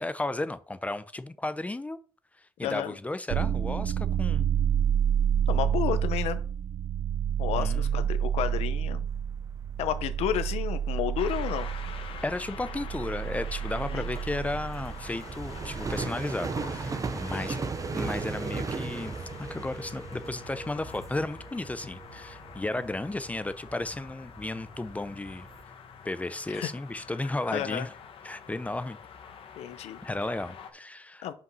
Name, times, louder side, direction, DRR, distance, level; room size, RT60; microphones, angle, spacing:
voice 1, 0.0-2.0 2.6-4.5 7.6-8.0 12.2-17.6 17.9-25.5 26.0-27.9 28.2-29.0 30.0-31.3, left 2 dB, 15° left, 0.6 m, -34 dB
voice 2, 2.6-3.0 5.5-6.4 7.4-9.1 9.8-11.7 13.9-14.1 17.3-17.6 26.5-26.7 27.2-27.9 29.6-30.0 31.2-31.3, left 11 dB, 85° left, 0.9 m, -32 dB
sound 1, 3.3-16.0, right 9 dB, 70° right, 0.5 m, -29 dB
sound 2, 9.1-25.6, right 4 dB, 35° right, 0.8 m, -38 dB
sound 3, 11.2-30.7, left 6 dB, 60° left, 1.3 m, -46 dB
5.4 x 5.2 x 5.5 m
cardioid pair, 95°, 10 cm